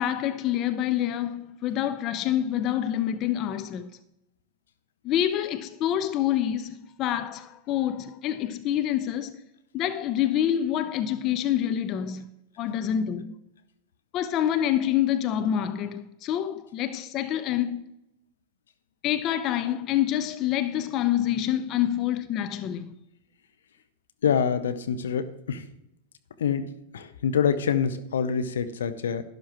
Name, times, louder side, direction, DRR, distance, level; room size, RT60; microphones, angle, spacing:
voice 1, 0.0-3.9 5.0-9.4 9.7-12.2 12.6-13.4 14.1-17.8 19.0-22.9, left 11 dB, 40° left, 0.6 m, -27 dB
voice 2, 24.2-25.6 26.4-26.6 26.9-29.2, left 7 dB, 75° left, 0.8 m, -26 dB
12.0 x 11.5 x 3.1 m
hypercardioid pair, 95°, 0 cm